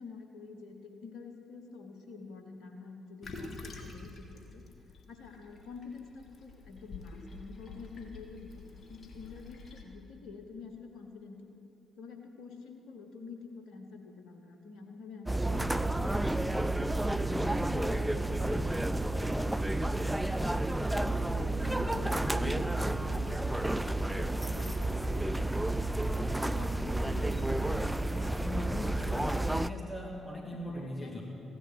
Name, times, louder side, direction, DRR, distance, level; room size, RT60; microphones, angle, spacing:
voice 1, 0.0-4.7 5.1-11.6 12.0-16.2 16.7-19.8 20.4-25.6 26.2-28.0 29.0-29.4 30.5-31.2, left 4 dB, 70° left, 4 dB, 1.1 m, -48 dB
Toilet flush, 3.2-9.8, left 3 dB, 50° left, 1.9 m, -48 dB
sound 1, 15.3-29.7, right 1 dB, 5° right, 0.4 m, -31 dB
voice 2, 28.0-31.2, left 1 dB, 15° left, -1 dB, 2.3 m, -40 dB
15.5 x 11.0 x 6.2 m, 3.0 s
hypercardioid pair, 40°, 0 cm